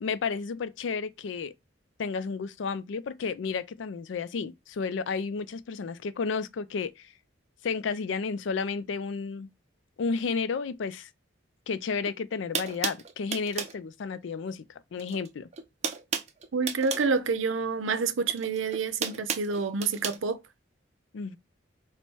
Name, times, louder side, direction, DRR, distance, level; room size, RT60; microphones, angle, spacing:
voice 1, 0.0-1.5 2.0-7.1 7.6-9.5 10.0-11.1 11.7-14.7 14.9-15.5 21.1-21.4, left 5 dB, 70° left, 0.4 m, -32 dB
sound 1, 12.0-12.1 12.5-13.8 15.0-15.3 15.5-17.1 18.3-20.2, right 6 dB, 35° right, 0.4 m, -33 dB
voice 2, 16.5-20.4, right 4 dB, 80° right, 0.6 m, -28 dB
4.2 x 2.1 x 4.5 m
head